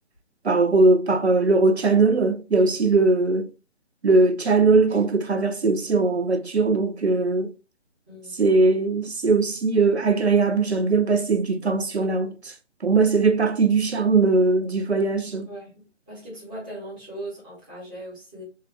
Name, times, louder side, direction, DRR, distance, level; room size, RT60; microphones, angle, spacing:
voice 1, 0.4-3.5 4.0-7.5 8.3-12.5 12.8-15.5, right 3 dB, 60° right, 0.6 m, -20 dB
voice 2, 15.5-18.4, right 1 dB, 5° right, 0.8 m, -39 dB
4.5 x 2.3 x 3.3 m
figure-of-eight pair, 145°, 36 cm